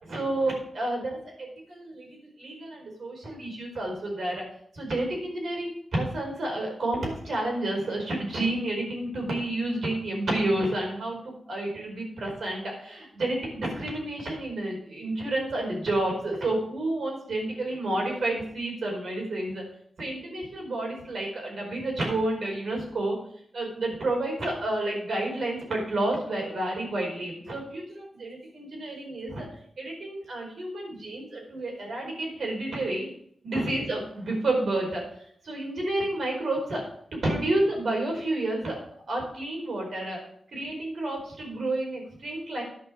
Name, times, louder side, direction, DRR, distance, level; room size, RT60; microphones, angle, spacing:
voice 1, 0.0-4.4 4.7-19.6 20.0-23.2 23.5-29.4 29.8-33.1 33.4-35.0 35.4-36.8 37.1-38.8 39.1-40.2 40.5-42.6, right 1 dB, 65° right, -1 dB, 4.8 m, -30 dB
10.5 x 6.2 x 6.5 m, 0.66 s
wide cardioid pair, 100°, 0 cm